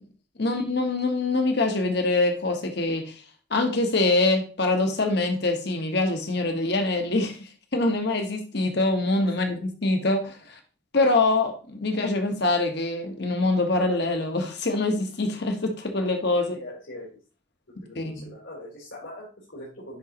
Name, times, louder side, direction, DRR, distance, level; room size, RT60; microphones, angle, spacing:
voice 1, 0.4-3.2 3.5-10.6 10.9-16.6 17.9-18.3, left 2 dB, 55° left, 5 dB, 1.2 m, -24 dB
voice 2, 16.5-17.1 17.8-20.0, left 1 dB, 85° left, -7 dB, 3.4 m, -42 dB
10.0 x 3.8 x 2.9 m, 0.36 s
head